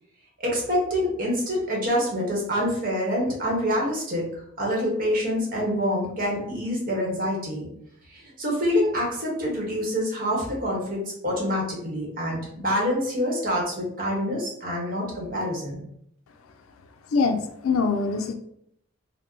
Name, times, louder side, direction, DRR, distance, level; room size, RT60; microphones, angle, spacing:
voice 1, 0.4-4.3 4.6-7.7 8.1-15.8, equal, 45° right, -2 dB, 1.0 m, -26 dB
voice 2, 17.1-18.3, left 4 dB, 90° left, 7 dB, 0.4 m, -23 dB
2.8 x 2.1 x 3.6 m, 0.71 s
head